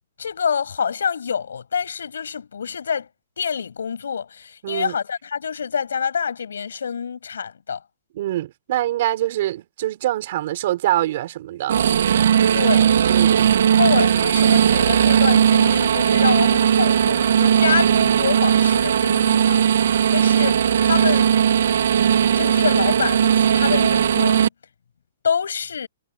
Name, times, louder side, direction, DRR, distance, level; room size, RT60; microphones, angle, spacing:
voice 1, 0.2-3.1 3.4-7.8 12.5-12.9 13.8-21.3 22.4-24.5 25.2-25.9, left 7 dB, 90° left, 7.5 m, -26 dB
voice 2, 4.6-4.9 8.1-11.7 13.0-13.4, right 14 dB, 50° right, 5.0 m, -24 dB
sound 1, 11.7-24.5, right 8 dB, 70° right, 0.9 m, -17 dB
hypercardioid pair, 155°, 0 cm